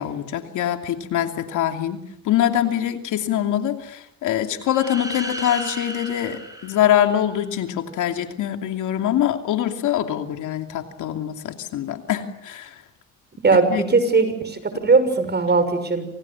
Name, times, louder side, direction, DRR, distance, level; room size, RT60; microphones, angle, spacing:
voice 1, 0.0-12.7 13.7-13.8, left 11 dB, 80° left, 6 dB, 2.8 m, -24 dB
sound 1, 4.6-7.6, right 1 dB, 10° right, 7.3 m, -35 dB
voice 2, 13.4-16.1, right 4 dB, 35° right, 11 dB, 6.4 m, -19 dB
28.5 x 27.0 x 7.3 m, 0.74 s
cardioid pair, 90°, 30 cm